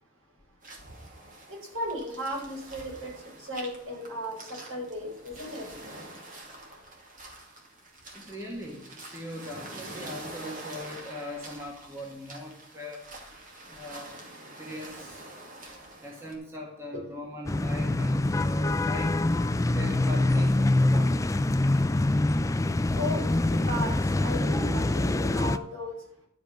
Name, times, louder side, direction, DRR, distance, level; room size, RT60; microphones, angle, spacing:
sound 1, 0.6-16.3, right 1 dB, 35° right, 2.5 m, -46 dB
voice 1, 1.5-3.1 3.4-5.6 23.0-23.9 24.2-25.9, equal, 60° right, -2 dB, 4.9 m, -35 dB
voice 2, 8.1-13.0 13.7-14.2 14.6-15.2 16.0-19.1 19.7-20.5 20.8-21.1, left 1 dB, 10° right, -2 dB, 1.8 m, -40 dB
sound 2, 17.5-25.6, left 2 dB, 15° left, 0.3 m, -25 dB
11.5 x 5.3 x 7.6 m, 0.75 s
head